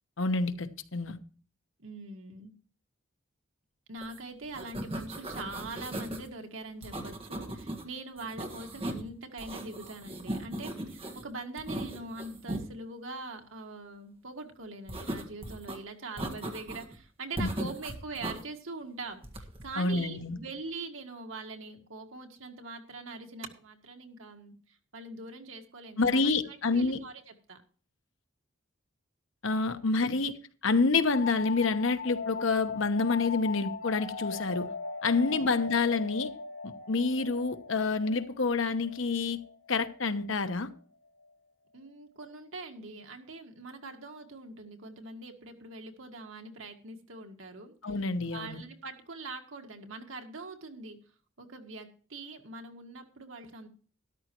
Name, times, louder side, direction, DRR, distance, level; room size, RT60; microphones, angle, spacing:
voice 1, 0.2-1.2 17.4-17.5 19.8-20.4 26.0-27.0 29.4-30.3 30.6-34.7 35.0-36.3 36.6-39.4 39.7-40.7 47.8-48.6, left 4 dB, 75° left, 1.0 m, -28 dB
voice 2, 1.8-2.5 3.9-27.6 29.9-30.2 35.1-35.4 41.7-47.7 48.3-51.0 51.4-53.7, right 3 dB, 85° right, 1.9 m, -43 dB
sound 1, 4.0-4.2 4.4-6.3 6.8-7.8 8.2-9.1 9.4-11.2 11.6-12.7 14.9-15.8 16.2-17.0 17.4-18.4 19.2-19.7, right 1 dB, 30° right, 1.6 m, -38 dB
sound 2, 31.1-40.5, left 4 dB, 90° left, 2.7 m, -40 dB
13.0 x 11.5 x 3.0 m
head